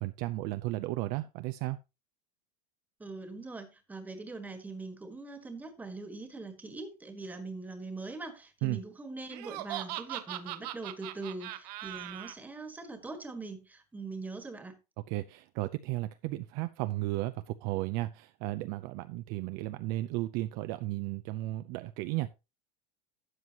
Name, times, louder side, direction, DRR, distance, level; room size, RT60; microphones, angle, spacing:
voice 1, 0.0-1.8 8.6-8.8 15.1-22.3, right 18 dB, 45° right, 0.5 m, -34 dB
voice 2, 3.0-14.8, right 3 dB, 5° right, 1.5 m, -42 dB
Laughter, 9.3-12.3, right 15 dB, 70° right, 1.0 m, -39 dB
12.5 x 8.0 x 2.9 m
supercardioid pair, 160°, 21 cm